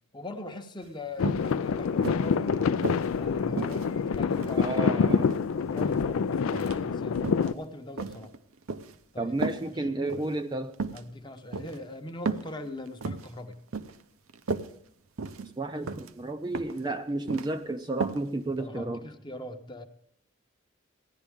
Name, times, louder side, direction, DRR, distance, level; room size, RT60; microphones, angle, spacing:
voice 1, 0.1-2.8 3.2-4.9 5.7-8.3 9.1-9.3 10.9-13.6 18.6-19.8, left 1 dB, 20° left, 6 dB, 0.8 m, -41 dB
sound 1, 0.8-0.9 1.3-1.5 2.0-3.1 3.6-4.7 5.1-6.0 6.5-6.8 7.2-7.5 8.0-9.0 9.4-9.6 10.1-10.3 10.7-11.0 11.5-11.8 12.3-12.5 12.9-13.3 13.7-14.0 14.3-14.7 15.2-15.5 15.9-16.1 16.5-16.8 17.1-17.5 18.0-18.2 18.6-18.7, right 4 dB, 85° right, 0.6 m, -34 dB
sound 2, 1.2-7.5, left 6 dB, 80° left, 0.4 m, -26 dB
voice 2, 4.6-5.4 9.2-10.7 15.6-19.1, right 2 dB, 20° right, 6 dB, 0.4 m, -32 dB
15.5 x 11.0 x 3.6 m, 0.67 s
head